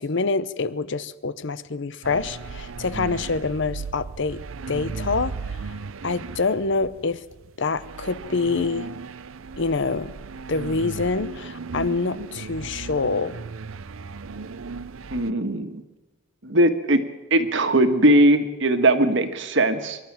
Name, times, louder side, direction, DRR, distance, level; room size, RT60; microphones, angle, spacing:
voice 1, 0.0-4.4 4.7-5.6 6.0-7.2 7.6-8.9 9.6-10.1 10.5-13.4, left 4 dB, 60° left, 16 dB, 0.7 m, -26 dB
sound 1, 2.0-15.3, right 4 dB, 80° right, 0.6 m, -36 dB
voice 2, 15.1-15.8 16.4-17.0 17.3-20.0, right 1 dB, 60° right, 8 dB, 1.6 m, -19 dB
24.5 x 12.0 x 8.9 m, 1.1 s
head